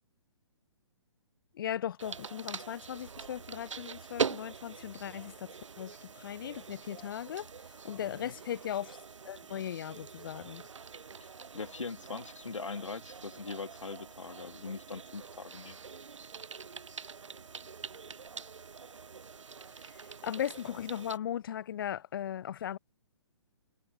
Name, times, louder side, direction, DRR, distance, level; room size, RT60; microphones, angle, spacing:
voice 1, 1.5-7.5 7.8-9.0 9.3-10.6 20.2-22.8, left 10 dB, 45° left, 0.5 m, -38 dB
sound 1, 2.0-21.2, right 5 dB, 75° right, 0.6 m, -43 dB
voice 2, 8.0-8.3 11.2-11.3 11.5-15.8, left 4 dB, 80° left, 1.8 m, -41 dB
figure-of-eight pair, 130°, 16 cm